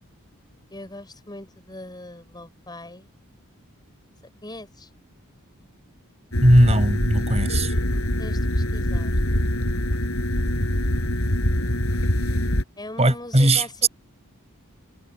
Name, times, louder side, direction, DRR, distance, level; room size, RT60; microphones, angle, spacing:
voice 1, 0.7-3.1 4.4-4.9 8.2-9.2 12.8-13.9, left 1 dB, 20° left, 6.2 m, -40 dB
sound 1, 6.3-12.6, left 1 dB, 70° left, 6.4 m, -24 dB
voice 2, 6.4-7.7 13.0-13.9, right 1 dB, 30° right, 7.0 m, -18 dB
head